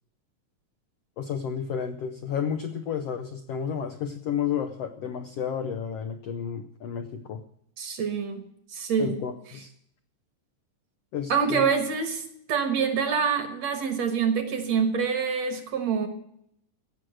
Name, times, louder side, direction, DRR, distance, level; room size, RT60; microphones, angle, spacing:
voice 1, 1.2-7.4 9.0-9.7 11.1-11.7, left 7 dB, 90° left, 7 dB, 1.3 m, -31 dB
voice 2, 7.8-8.4 8.7-9.2 11.3-16.1, right 6 dB, 60° right, 9 dB, 2.1 m, -26 dB
16.5 x 6.3 x 8.9 m, 0.73 s
omnidirectional pair, 4.1 m